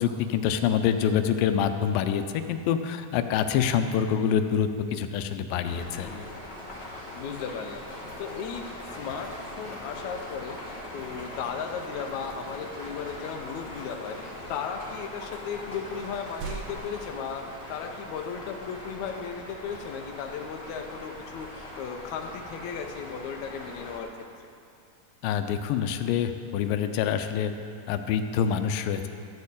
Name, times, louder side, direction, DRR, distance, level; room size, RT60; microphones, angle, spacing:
voice 1, 0.0-6.1 25.2-27.5 27.9-29.1, left 8 dB, 90° left, 8 dB, 2.3 m, -26 dB
sound 1, 5.6-24.0, left 1 dB, 20° left, 1.5 m, -41 dB
voice 2, 5.7-6.5 7.1-9.3 9.6-17.4 17.7-24.1, left 6 dB, 75° left, 4 dB, 1.8 m, -36 dB
sound 2, 16.0-18.2 18.8-18.9 21.5-23.7, right 5 dB, 80° right, 2.1 m, -47 dB
12.5 x 4.4 x 8.3 m, 2.4 s
omnidirectional pair, 4.0 m